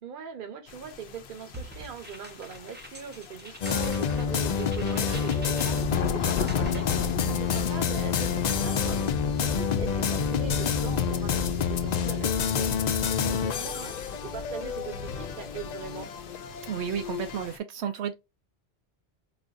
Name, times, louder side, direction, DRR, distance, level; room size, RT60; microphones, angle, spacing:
voice 1, 0.0-9.0 9.3-12.9 13.2-16.1, right 6 dB, 55° right, 1.0 m, -41 dB
sound 1, 0.7-17.6, left 6 dB, 75° left, 0.8 m, -38 dB
sound 2, 1.5-7.2, right 1 dB, 10° right, 0.7 m, -45 dB
sound 3, 3.6-17.5, left 6 dB, 55° left, 0.5 m, -28 dB
voice 2, 16.7-18.1, right 8 dB, 85° right, 0.9 m, -32 dB
4.0 x 2.5 x 2.5 m
omnidirectional pair, 1.1 m